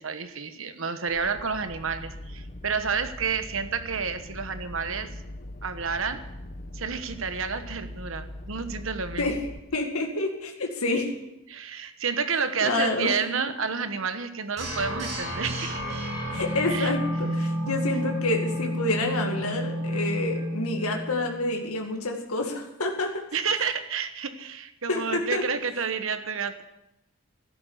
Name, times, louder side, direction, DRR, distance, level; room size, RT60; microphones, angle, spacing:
voice 1, 0.0-5.1 5.6-6.2 6.7-9.3 11.5-15.8 16.7-16.9 23.3-26.6, right 5 dB, 65° right, 10 dB, 1.2 m, -30 dB
sound 1, 1.1-9.6, left 1 dB, 40° left, 1.0 m, -41 dB
voice 2, 9.7-11.1 12.6-13.1 16.3-23.2 24.9-25.4, left 2 dB, 80° left, 2 dB, 2.1 m, -28 dB
sound 2, 14.6-21.5, equal, 35° right, 7.5 m, -30 dB
13.0 x 11.5 x 8.0 m, 0.92 s
head